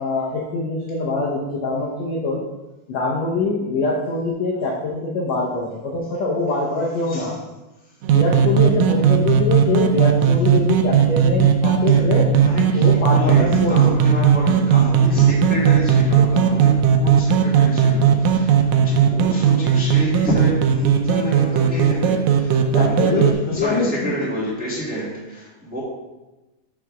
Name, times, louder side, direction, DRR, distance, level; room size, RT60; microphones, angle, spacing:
voice 1, 0.0-2.4 2.9-7.3 8.1-12.3 12.7-14.0 22.7-24.1, left 3 dB, 70° left, -3 dB, 1.7 m, -23 dB
sound 1, 8.0-23.3, right 7 dB, 90° right, 1.6 m, -17 dB
voice 2, 12.4-25.8, equal, 5° right, -7 dB, 1.4 m, -29 dB
7.6 x 3.5 x 6.2 m, 1.1 s
omnidirectional pair, 4.2 m